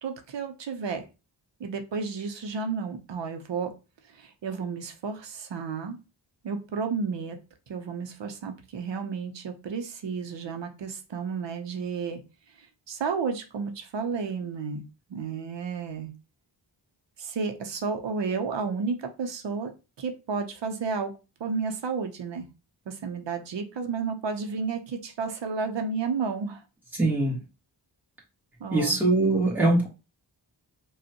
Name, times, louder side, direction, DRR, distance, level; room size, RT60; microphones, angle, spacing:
voice 1, 0.0-1.0 1.6-3.7 4.2-6.0 6.4-7.4 7.7-12.2 12.9-16.1 17.2-21.1 21.4-22.5 22.9-26.6 28.6-29.0, right 5 dB, 75° right, 6 dB, 0.8 m, -32 dB
voice 2, 26.9-27.4 28.7-29.9, right 2 dB, 5° right, -4 dB, 1.6 m, -22 dB
5.2 x 2.4 x 2.8 m, 0.29 s
cardioid pair, 70°, 44 cm